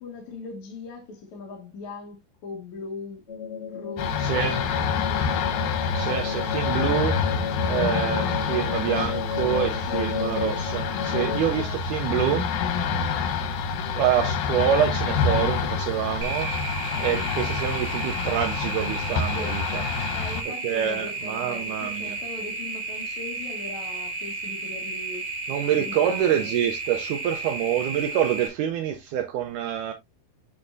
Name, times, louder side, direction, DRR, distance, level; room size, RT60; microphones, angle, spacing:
voice 1, 0.0-3.2 3.7-5.7 9.8-10.1 11.3-11.8 19.3-19.7 20.1-25.3 25.8-26.6, left 3 dB, 60° left, 2.7 m, -40 dB
sound 1, 3.3-11.4, left 6 dB, 40° left, 0.9 m, -32 dB
sound 2, 4.0-20.4, left 5 dB, 85° left, 2.9 m, -27 dB
voice 2, 4.2-4.6 5.9-7.2 7.7-12.5 14.0-16.5 17.0-19.8 20.6-22.2 25.5-29.9, right 10 dB, 80° right, 1.9 m, -26 dB
sound 3, 16.2-28.5, right 3 dB, 35° right, 1.6 m, -33 dB
7.9 x 5.4 x 2.5 m
omnidirectional pair, 4.1 m